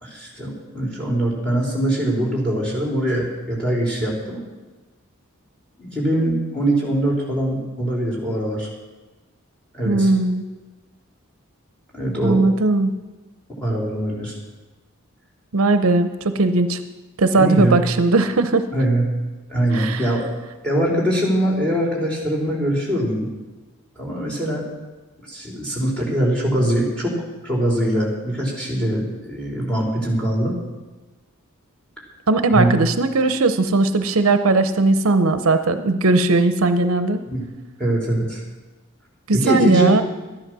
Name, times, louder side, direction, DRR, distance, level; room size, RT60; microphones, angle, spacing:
voice 1, 0.0-4.4 5.8-8.7 9.7-10.1 11.9-12.4 13.6-14.4 17.4-17.8 18.7-19.2 19.5-20.3 20.6-23.3 24.0-24.6 25.3-27.2 27.4-30.6 32.5-32.7 37.3-37.4 37.8-38.4 39.3-39.9, right 1 dB, 5° left, -2 dB, 3.6 m, -22 dB
voice 2, 9.8-10.4 12.2-12.9 15.5-16.8 17.2-18.6 19.7-20.1 32.3-37.2 39.3-40.0, right 3 dB, 70° right, 9 dB, 0.7 m, -18 dB
12.5 x 11.0 x 6.1 m, 1.2 s
head